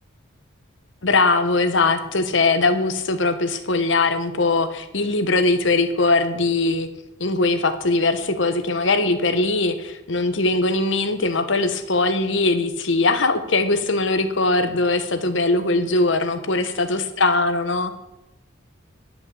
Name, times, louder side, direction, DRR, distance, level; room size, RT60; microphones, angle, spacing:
voice 1, 1.0-6.9 7.2-17.9, left 3 dB, 70° left, 9 dB, 1.1 m, -21 dB
10.5 x 5.7 x 8.4 m, 0.91 s
head